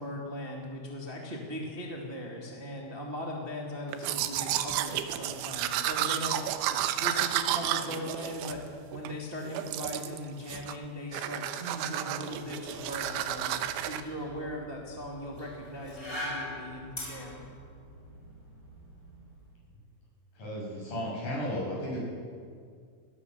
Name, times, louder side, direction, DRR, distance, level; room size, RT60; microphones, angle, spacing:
voice 1, 0.0-17.4, left 1 dB, 35° right, -2 dB, 0.8 m, -39 dB
Domestic sounds home sounds, 3.9-9.1 9.5-10.2 10.5-10.8 11.1-14.0, right 12 dB, 85° right, 3.2 m, -32 dB
sound 1, 12.6-19.5, left 1 dB, 20° left, 6.6 m, -43 dB
voice 2, 20.4-22.0, equal, 45° left, -4 dB, 9.0 m, -34 dB
21.5 x 19.0 x 6.9 m, 2.1 s
omnidirectional pair, 5.6 m